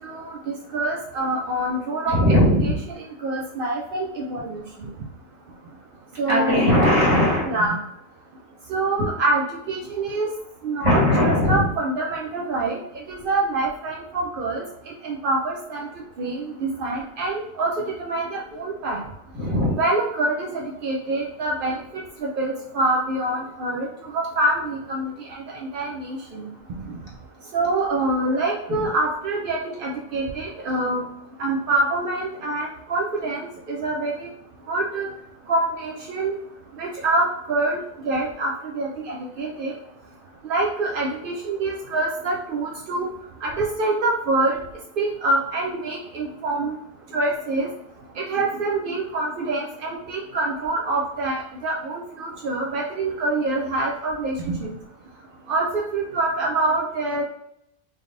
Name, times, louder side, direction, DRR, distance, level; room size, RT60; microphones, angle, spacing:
voice 1, 0.0-2.7 3.2-4.6 6.2-6.7 7.5-7.8 8.7-10.3 10.6-12.8 13.1-14.6 15.0-15.9 16.2-19.0 19.8-21.8 22.4-25.4 25.7-26.5 26.9-27.0 27.5-31.0 31.4-33.4 33.7-34.1 34.7-35.1 35.5-36.3 36.8-37.8 38.0-39.7 40.4-43.1 43.4-44.6 45.0-46.8 47.1-47.7 48.3-54.7 55.5-57.2, right 2 dB, 65° right, -1 dB, 0.5 m, -25 dB
voice 2, 2.0-2.7 6.3-7.5 10.8-11.7 19.3-19.7 28.7-28.8, left 1 dB, 25° right, -6 dB, 1.4 m, -19 dB
3.8 x 3.4 x 2.6 m, 0.78 s
omnidirectional pair, 1.4 m